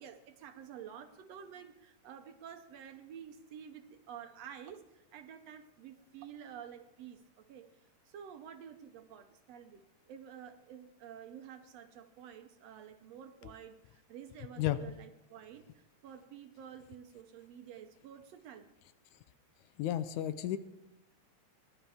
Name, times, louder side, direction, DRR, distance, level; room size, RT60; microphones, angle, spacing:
voice 1, 0.0-9.8 10.1-18.7, right 8 dB, 70° right, 7 dB, 1.8 m, -50 dB
voice 2, 19.8-20.6, left 13 dB, 85° left, 12 dB, 2.0 m, -32 dB
22.0 x 12.0 x 3.5 m, 0.89 s
omnidirectional pair, 3.4 m